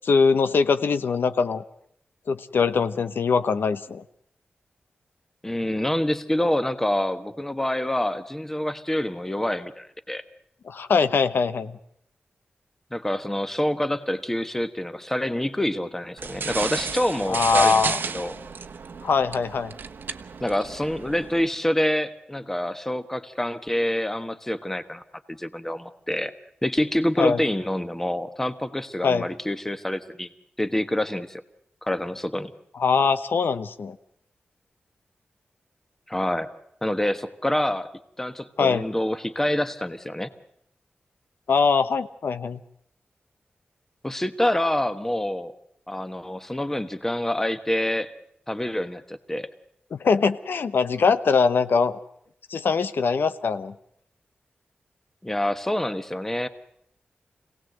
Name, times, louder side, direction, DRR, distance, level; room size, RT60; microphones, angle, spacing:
voice 1, 0.0-1.6 2.3-4.0 10.7-11.8 17.3-18.0 19.0-19.7 27.2-27.4 29.0-29.3 32.8-34.0 38.6-38.8 41.5-42.6 49.9-52.0 52.5-53.7, left 5 dB, 80° left, 11 dB, 0.9 m, -22 dB
voice 2, 5.4-10.2 12.9-17.8 18.1-18.3 20.4-25.0 25.3-26.3 26.6-30.3 30.6-31.4 31.8-32.5 36.1-36.5 36.8-37.9 38.2-40.3 44.0-45.5 45.9-48.1 48.5-49.5 55.2-56.5, left 1 dB, 10° left, 10 dB, 1.2 m, -26 dB
sound 1, 16.2-21.5, right 5 dB, 70° right, 1.1 m, -32 dB
26.0 x 18.0 x 7.8 m, 0.73 s
wide cardioid pair, 160°, 4 cm